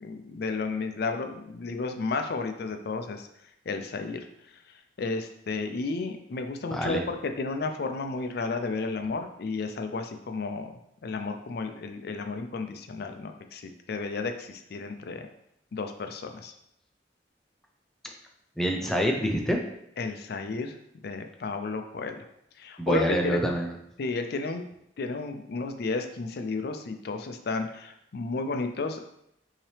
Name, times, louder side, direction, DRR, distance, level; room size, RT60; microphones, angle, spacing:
voice 1, 0.0-3.3 3.7-4.3 4.5-15.3 15.7-16.5 20.0-20.8 21.0-22.2 22.6-23.4 24.0-24.6 25.0-29.1, left 3 dB, 60° left, 6 dB, 0.4 m, -32 dB
voice 2, 6.7-7.0 18.6-19.6 22.8-23.7, equal, ahead, 1 dB, 0.5 m, -26 dB
5.8 x 2.8 x 3.2 m, 0.78 s
head